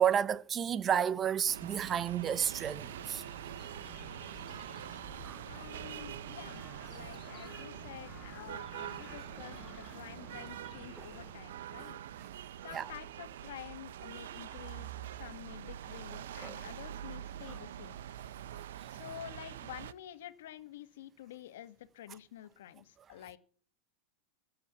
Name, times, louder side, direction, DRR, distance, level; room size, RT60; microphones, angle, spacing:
voice 1, 0.0-3.2 5.2-5.4 11.0-11.1 11.9-12.0 12.7-12.9 16.4-16.6, right 8 dB, 20° right, 0.5 m, -31 dB
sound 1, 1.5-19.9, right 11 dB, 90° right, 0.7 m, -45 dB
sound 2, 2.8-11.3, left 4 dB, 20° left, 5.0 m, -53 dB
voice 2, 5.4-12.0 12.6-18.0 18.9-23.4, left 12 dB, 75° left, 1.7 m, -49 dB
15.5 x 7.8 x 8.2 m
supercardioid pair, 170°, 0 cm